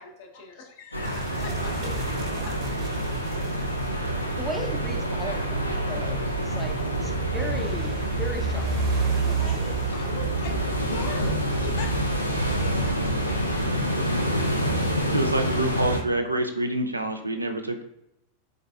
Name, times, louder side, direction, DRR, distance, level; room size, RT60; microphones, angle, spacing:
voice 1, 0.0-2.8 9.2-10.6 10.9-12.3 12.6-13.9, left 4 dB, 50° left, 2 dB, 0.7 m, -41 dB
sound 1, 0.9-16.0, equal, 85° left, 0.4 m, -28 dB
sound 2, 1.0-13.8, right 5 dB, 35° right, 0.9 m, -31 dB
voice 2, 4.4-8.8, left 1 dB, ahead, 3 dB, 0.6 m, -36 dB
voice 3, 15.1-17.8, right 1 dB, 85° right, 6 dB, 0.3 m, -26 dB
3.9 x 3.6 x 2.2 m, 0.81 s
figure-of-eight pair, 90°, 0 cm